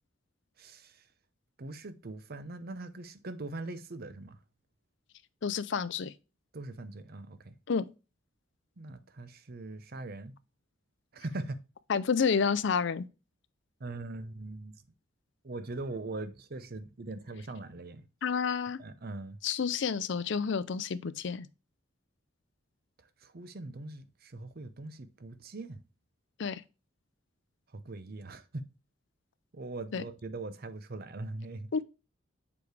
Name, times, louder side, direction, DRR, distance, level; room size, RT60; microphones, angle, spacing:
voice 1, 0.6-1.0 1.6-4.4 6.5-7.5 8.8-10.3 11.1-11.6 13.8-14.8 15.4-18.1 18.8-19.4 23.2-25.8 27.7-28.7 29.5-31.7, right 2 dB, 50° right, 0.7 m, -41 dB
voice 2, 5.4-6.1 7.7-7.8 11.9-13.1 18.2-18.8 19.4-21.5 26.4-26.6 29.9-30.0 31.7-31.8, left 6 dB, 65° left, 0.5 m, -29 dB
7.0 x 4.8 x 3.3 m
head